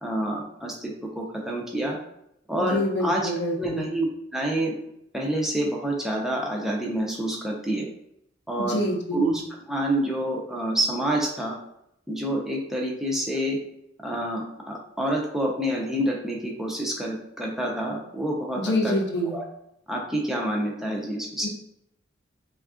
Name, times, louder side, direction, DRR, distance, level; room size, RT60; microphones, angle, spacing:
voice 1, 0.0-2.0 2.5-3.3 3.6-4.1 4.3-4.7 5.1-7.9 8.5-8.8 9.1-9.4 9.7-11.6 12.1-13.6 14.0-19.0 19.2-19.4 19.9-21.5, right 1 dB, ahead, -2 dB, 0.3 m, -27 dB
voice 2, 2.6-3.8 8.6-9.3 18.6-19.3 21.4-21.5, left 1 dB, 60° left, 2 dB, 0.5 m, -26 dB
3.4 x 2.3 x 2.4 m, 0.78 s
head